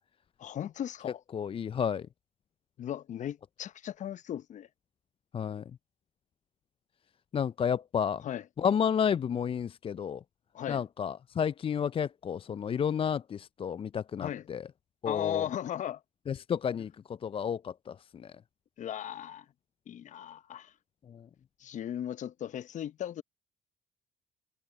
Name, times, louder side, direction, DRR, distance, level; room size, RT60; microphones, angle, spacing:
voice 1, 0.4-1.2 2.8-4.7 8.2-8.4 10.5-10.8 14.2-14.5 15.0-16.0 18.8-19.4 19.9-20.7 21.6-23.2, left 10 dB, 55° left, 1.1 m, -37 dB
voice 2, 1.0-2.1 5.3-5.6 7.3-8.3 8.6-10.2 10.7-14.7 15.0-15.5 16.3-18.3 21.1-21.3, left 7 dB, 35° left, 0.5 m, -31 dB
hypercardioid pair, 55°, 15 cm